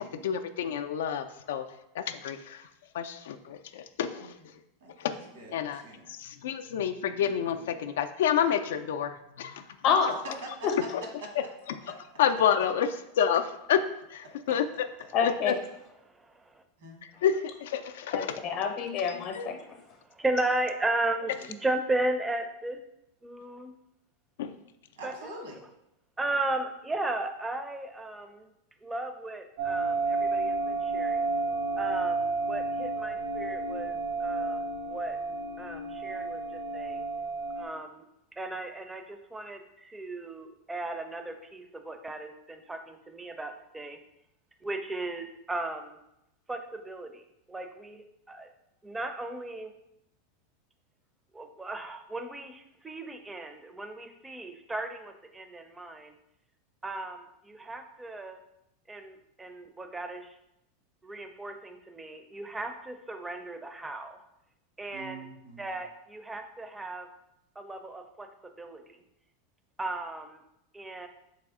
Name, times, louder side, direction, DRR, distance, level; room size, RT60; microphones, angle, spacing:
voice 1, 0.0-1.6 2.0-2.7 2.9-4.4 5.0-5.1 5.5-5.8 6.1-9.6 10.9-11.0 12.2-12.9 13.2-13.8 14.5-14.6 15.2-15.5 17.2-18.3 19.1-19.5 24.4-24.5, left 8 dB, 80° left, 9 dB, 0.3 m, -28 dB
voice 2, 4.8-6.1 10.2-10.7 11.2-11.3 11.8-11.9 16.8-17.0 25.0-25.6 64.9-65.7, right 2 dB, 85° right, 0 dB, 1.3 m, -44 dB
voice 3, 9.8-10.2 15.1-15.5 18.1-19.6, left 6 dB, 50° left, 5 dB, 0.7 m, -27 dB
voice 4, 19.6-22.8 23.2-23.7 25.0-25.1 26.2-28.5 28.8-31.3 31.8-34.6 34.9-35.2 35.6-37.0 37.6-38.0 38.4-44.0 44.6-46.0 46.5-47.2 47.5-48.5 48.8-49.7 51.3-56.1 56.8-58.4 58.9-60.4 61.0-64.2 64.8-65.2 65.6-67.1 67.6-69.0 69.8-70.4 70.7-71.1, right 2 dB, 10° right, 6 dB, 0.4 m, -35 dB
sound 1, 29.6-37.7, right 3 dB, 65° right, 0.7 m, -31 dB
3.4 x 3.2 x 3.6 m, 0.83 s
hypercardioid pair, 115°, 0 cm